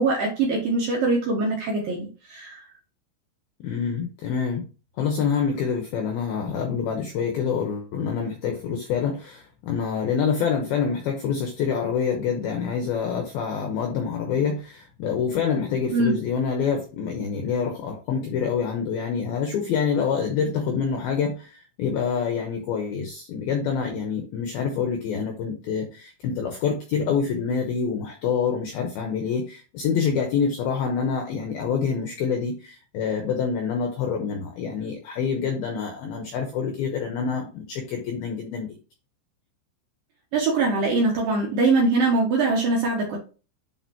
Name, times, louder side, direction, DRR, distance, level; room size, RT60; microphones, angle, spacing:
voice 1, 0.0-2.6 15.9-16.1 40.3-43.2, right 3 dB, 70° right, -2 dB, 2.2 m, -22 dB
voice 2, 3.6-4.7 5.0-38.8, left 6 dB, 85° left, 3 dB, 2.2 m, -26 dB
9.8 x 4.5 x 2.9 m, 0.35 s
omnidirectional pair, 5.8 m